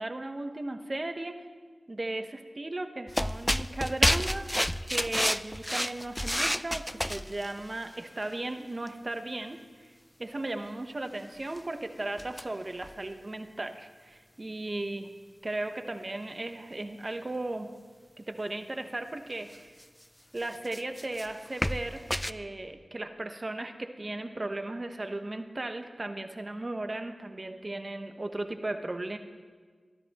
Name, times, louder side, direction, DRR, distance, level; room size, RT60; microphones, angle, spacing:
voice 1, 0.0-1.5 1.9-4.5 4.8-9.9 10.2-15.1 15.4-17.7 18.2-19.7 20.3-29.2, right 2 dB, 45° right, 6 dB, 1.0 m, -36 dB
sound 1, 3.1-7.6 8.9-9.0 11.5-11.6 12.2-12.4 12.8-12.9 19.5-19.6 20.4-22.3, equal, 5° left, 0.3 m, -30 dB
20.5 x 13.0 x 3.0 m, 1.5 s
cardioid pair, 45°, 0 cm